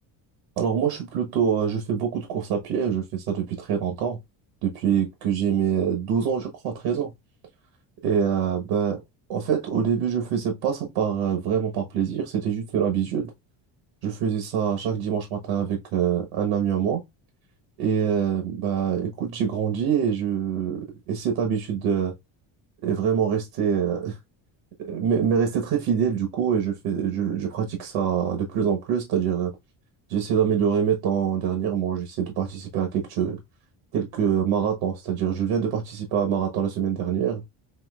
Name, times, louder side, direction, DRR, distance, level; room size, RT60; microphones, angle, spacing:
voice 1, 0.6-4.2 4.6-7.1 8.0-9.0 9.3-13.3 14.0-17.0 17.8-22.1 22.8-24.2 24.8-29.5 30.1-33.4 33.9-37.4, right 7 dB, 75° right, 1.3 m, -25 dB
6.2 x 2.8 x 2.4 m
cardioid pair, 145°, 44 cm